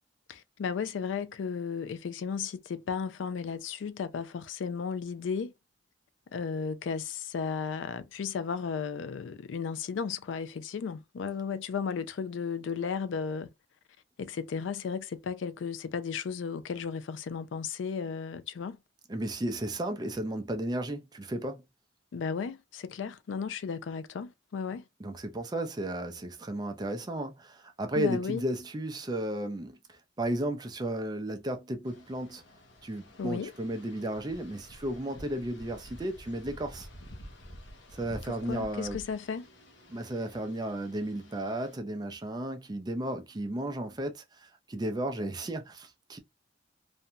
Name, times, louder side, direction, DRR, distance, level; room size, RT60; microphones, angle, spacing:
voice 1, 0.3-5.5 6.3-13.5 14.2-18.8 22.1-24.8 28.0-28.4 33.2-33.5 38.5-39.5, left 6 dB, 85° left, 0.4 m, -34 dB
voice 2, 19.1-21.6 25.0-32.4 32.8-36.9 37.9-39.0 39.9-46.2, right 1 dB, 20° right, 0.4 m, -34 dB
sound 1, 31.9-41.8, equal, 70° left, 0.8 m, -50 dB
2.6 x 2.2 x 2.7 m
head